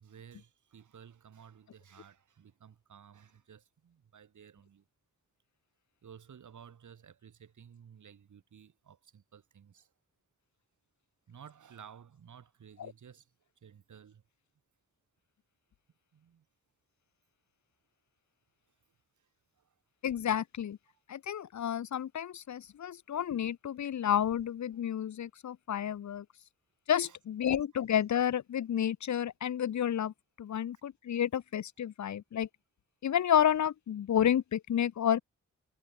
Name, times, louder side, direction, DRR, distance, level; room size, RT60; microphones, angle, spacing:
voice 1, 0.0-4.9 6.0-9.9 11.3-13.3 13.6-14.2 16.1-16.5 19.2-19.3 19.6-19.7 27.0-27.2, right 8 dB, 80° right, 7.2 m, -55 dB
voice 2, 20.0-20.8 21.1-26.2 26.9-32.5 33.0-35.2, left 9 dB, 70° left, 0.9 m, -30 dB
wide cardioid pair, 100°, 30 cm